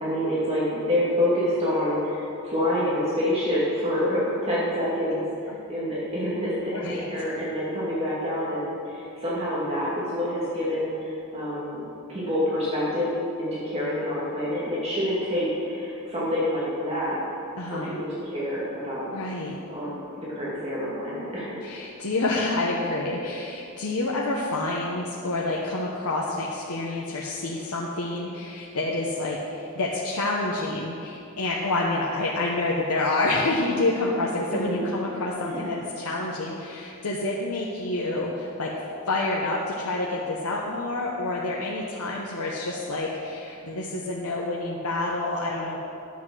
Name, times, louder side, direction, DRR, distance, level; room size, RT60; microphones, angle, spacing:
voice 1, 0.0-13.1 13.4-17.2 17.7-19.1 19.7-19.9 20.2-21.6 34.5-34.9 35.3-35.8, left 1 dB, 30° right, -8 dB, 2.3 m, -27 dB
voice 2, 17.6-17.9 19.1-19.6 21.6-38.7 39.1-45.8, left 2 dB, 85° left, -3 dB, 1.0 m, -28 dB
10.5 x 7.6 x 6.2 m, 2.8 s
head